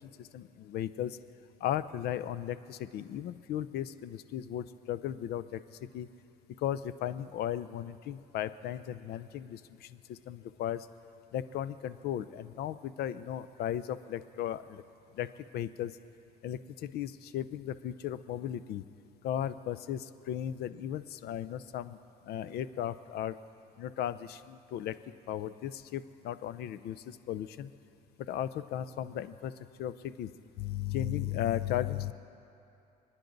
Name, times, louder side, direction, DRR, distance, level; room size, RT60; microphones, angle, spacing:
voice 1, 0.3-1.1 1.6-5.6 5.9-6.1 6.6-9.6 10.1-10.8 11.3-14.8 15.2-15.3 15.5-15.9 16.4-18.8 19.2-22.0 22.3-23.3 23.8-24.9 25.3-27.0 27.3-27.7 28.3-29.5 29.8-30.3 30.6-32.1, left 11 dB, 70° left, 14 dB, 0.6 m, -35 dB
29.0 x 10.0 x 4.0 m, 2.7 s
cardioid pair, 110°, 17 cm